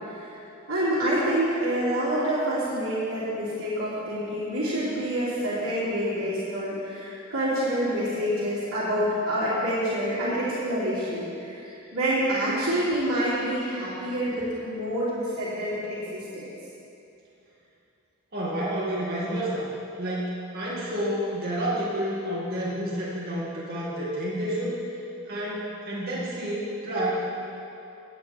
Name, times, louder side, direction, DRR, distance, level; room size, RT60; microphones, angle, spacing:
voice 1, 0.7-16.4, equal, 85° right, -12 dB, 3.1 m, -27 dB
voice 2, 18.3-19.7 20.0-24.8 25.3-27.1, right 1 dB, 45° right, -8 dB, 2.3 m, -29 dB
17.0 x 9.0 x 3.5 m, 2.8 s
head